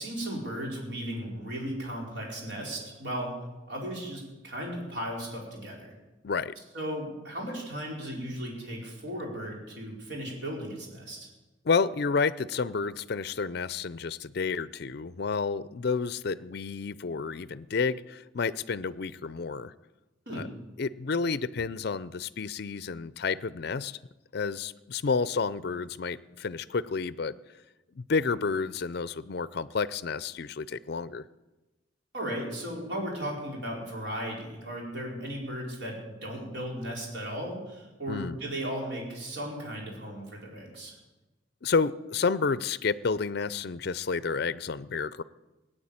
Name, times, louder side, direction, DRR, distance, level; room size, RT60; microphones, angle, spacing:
voice 1, 0.0-3.4 3.7-5.9 6.7-11.3 20.3-20.5 32.1-40.9, equal, 60° right, -2 dB, 4.9 m, -36 dB
voice 2, 6.2-6.5 11.6-19.7 20.3-20.5 20.8-24.0 24.3-27.3 28.0-31.2 38.1-38.4 41.6-45.2, left 5 dB, 55° left, 16 dB, 0.5 m, -30 dB
17.5 x 8.9 x 8.8 m, 1.1 s
head